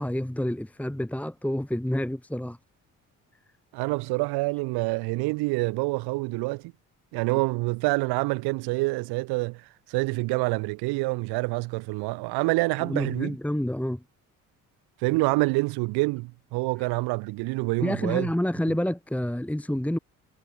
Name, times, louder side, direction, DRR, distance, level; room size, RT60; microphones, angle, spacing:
voice 1, 0.0-2.6 12.8-14.0 17.8-20.0, left 1 dB, 5° left, 1.6 m, -28 dB
voice 2, 3.7-6.7 7.1-9.6 9.9-13.3 15.0-18.3, right 24 dB, 70° right, 1.1 m, -27 dB
hypercardioid pair, 50°, 39 cm